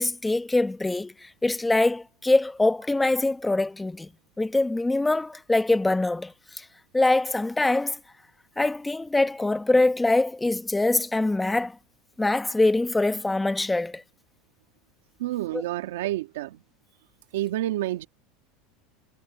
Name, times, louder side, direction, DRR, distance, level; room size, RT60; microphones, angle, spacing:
voice 1, 0.0-4.1 4.4-6.7 6.9-8.0 8.6-11.8 12.2-14.0 15.5-15.6, left 2 dB, 10° left, 1.0 m, -24 dB
voice 2, 15.2-16.6 17.3-18.1, right 15 dB, 85° right, 1.9 m, -29 dB
supercardioid pair, 120°, 0 cm